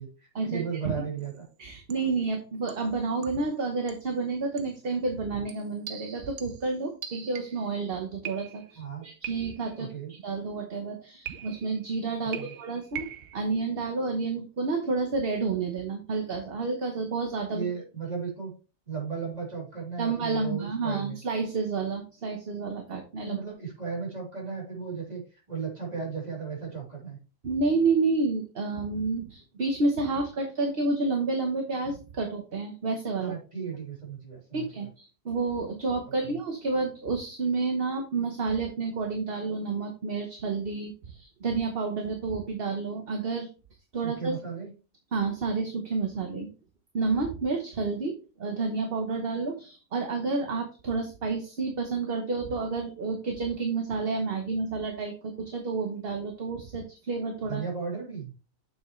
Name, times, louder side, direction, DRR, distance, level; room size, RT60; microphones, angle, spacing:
voice 1, 0.0-1.4 8.7-9.1 9.8-10.1 12.2-12.5 17.5-18.5 18.9-21.2 23.2-27.2 33.2-34.7 36.2-36.3 44.0-44.7 57.5-58.3, right 5 dB, 25° right, -3 dB, 3.4 m, -35 dB
sound 1, 1.2-1.4 1.9-2.2 2.7-3.6 3.9-4.1 4.6-4.8 5.5-7.7 8.2-8.8 9.2-9.8 11.2-11.8 12.3-13.4, right 9 dB, 70° right, 1.2 m, -42 dB
voice 2, 1.6-17.6 20.0-23.4 27.4-33.4 34.5-43.5 43.9-44.4 45.1-46.5 46.9-57.6, right 3 dB, 45° right, 3 dB, 1.1 m, -30 dB
7.1 x 6.3 x 3.1 m, 0.34 s
omnidirectional pair, 1.6 m